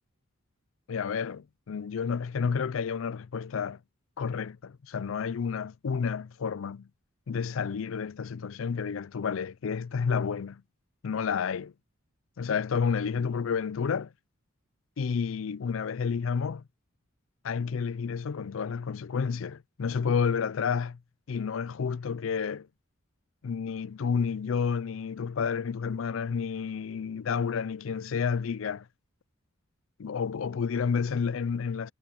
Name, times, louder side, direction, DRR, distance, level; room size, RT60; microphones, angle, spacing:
voice 1, 0.9-3.8 4.2-6.9 7.3-10.6 11.0-11.7 12.4-14.1 15.0-16.6 17.4-21.0 21.3-22.7 23.4-28.9 30.0-31.9, left 6 dB, 70° left, 0.4 m, -30 dB
head